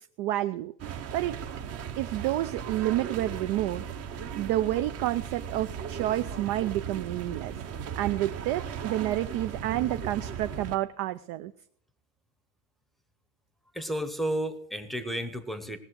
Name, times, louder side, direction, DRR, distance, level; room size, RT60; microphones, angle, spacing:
voice 1, 0.2-0.7 1.1-1.4 2.0-3.8 4.4-7.6 7.9-11.5, right 14 dB, 50° right, 10 dB, 0.6 m, -29 dB
sound 1, 0.8-10.8, right 8 dB, 30° right, 1.0 m, -37 dB
voice 2, 13.7-15.8, right 1 dB, ahead, 11 dB, 0.9 m, -32 dB
18.5 x 6.9 x 8.0 m, 0.66 s
supercardioid pair, 140°, 48 cm